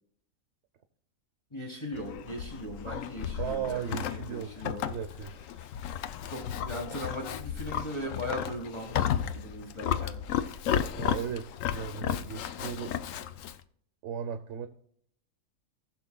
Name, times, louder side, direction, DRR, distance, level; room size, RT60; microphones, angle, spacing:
voice 1, 1.5-3.8 4.1-4.9 6.3-10.2, left 1 dB, 20° left, -1 dB, 1.5 m, -38 dB
Livestock farm animals working animals, 1.9-13.6, left 9 dB, 70° left, 0.9 m, -34 dB
voice 2, 3.4-5.3 11.0-13.0 14.0-14.7, right 8 dB, 60° right, 8 dB, 1.0 m, -36 dB
19.0 x 6.5 x 2.3 m, 0.65 s
omnidirectional pair, 1.5 m